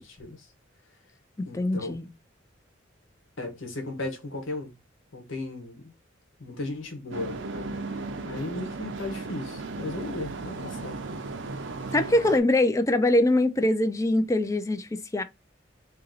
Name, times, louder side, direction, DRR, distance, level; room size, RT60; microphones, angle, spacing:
voice 1, 0.0-0.5 1.5-1.9 3.4-4.7 5.1-5.9 6.4-7.8 8.2-11.0, left 2 dB, 80° left, 1.2 m, -36 dB
voice 2, 1.4-2.1 11.9-15.2, left 1 dB, 15° left, 0.4 m, -23 dB
sound 1, 7.1-12.4, right 3 dB, 70° right, 0.6 m, -36 dB
2.9 x 2.8 x 3.8 m
head